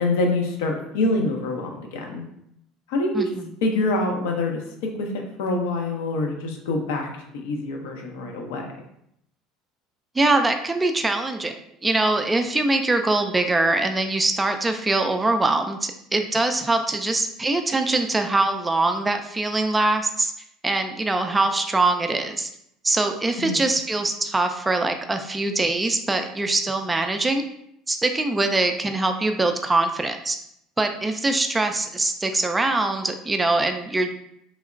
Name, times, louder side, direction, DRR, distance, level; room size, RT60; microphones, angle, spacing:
voice 1, 0.0-2.2 2.9-3.3 3.6-4.6 5.0-5.1 5.4-7.1 7.4-8.7 23.4-23.6, left 2 dB, 65° left, 2 dB, 0.6 m, -25 dB
voice 2, 3.1-3.5 10.2-20.3 20.6-22.5 22.8-27.4 27.9-30.4 30.8-34.1, right 2 dB, 15° right, 6 dB, 0.3 m, -23 dB
3.1 x 2.8 x 2.4 m, 0.75 s
figure-of-eight pair, 65°, 0 cm